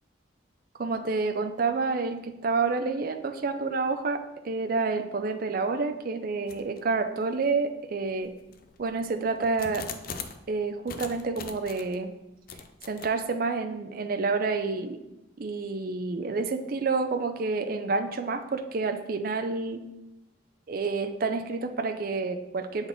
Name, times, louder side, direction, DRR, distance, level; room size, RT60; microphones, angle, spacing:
voice 1, 0.8-8.3 8.8-9.9 10.5-12.1 12.8-15.0 15.4-19.8 20.7-22.9, right 4 dB, 45° right, 7 dB, 0.4 m, -29 dB
sound 1, 6.5-6.8 7.4-7.5 8.2-10.5 10.9-12.0 12.5-13.1, left 6 dB, 45° left, 0.4 m, -41 dB
7.2 x 4.0 x 3.4 m, 0.94 s
head